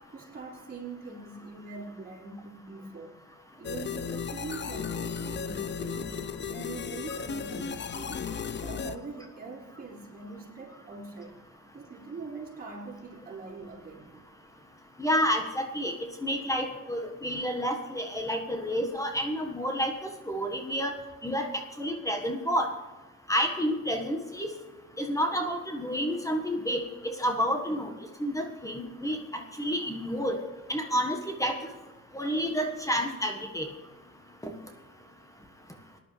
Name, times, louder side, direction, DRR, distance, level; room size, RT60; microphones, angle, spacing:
voice 1, 0.1-3.2 3.6-6.2 6.5-8.3 8.6-11.4 11.7-14.2, right 3 dB, 30° right, -6 dB, 4.9 m, -43 dB
sound 1, 3.6-9.0, left 6 dB, 35° left, 0.7 m, -35 dB
voice 2, 15.0-15.9 16.2-19.9 20.3-20.9 21.2-21.5 21.8-22.7 23.3-24.5 25.0-26.8 27.2-27.9 28.2-29.2 29.6-30.4 30.7-31.6 32.1-33.7 34.4-34.5, equal, 10° left, 4 dB, 1.6 m, -29 dB
19.0 x 11.0 x 3.4 m, 1.2 s
cardioid pair, 90°, 30 cm